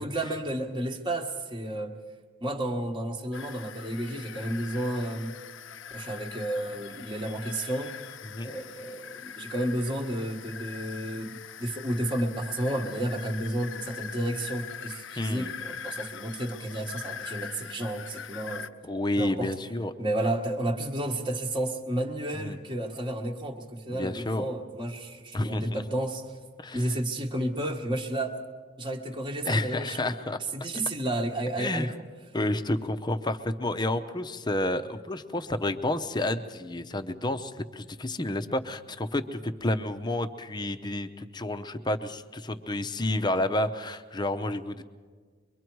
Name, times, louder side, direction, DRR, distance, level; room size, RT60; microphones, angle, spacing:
voice 1, 0.0-2.0 2.4-5.4 5.9-7.9 8.4-18.7 19.2-19.5 20.0-26.2 26.7-28.4 28.8-30.1 30.5-31.9, right 1 dB, 20° right, 1 dB, 1.3 m, -31 dB
sound 1, 3.3-18.7, left 7 dB, 60° left, 0.6 m, -42 dB
voice 2, 15.2-15.5 18.8-19.9 22.3-22.6 23.9-24.5 25.3-25.8 26.6-27.0 29.4-30.4 31.6-31.9 32.3-44.8, left 1 dB, 20° left, 9 dB, 0.8 m, -30 dB
23.5 x 23.5 x 4.7 m, 1.5 s
head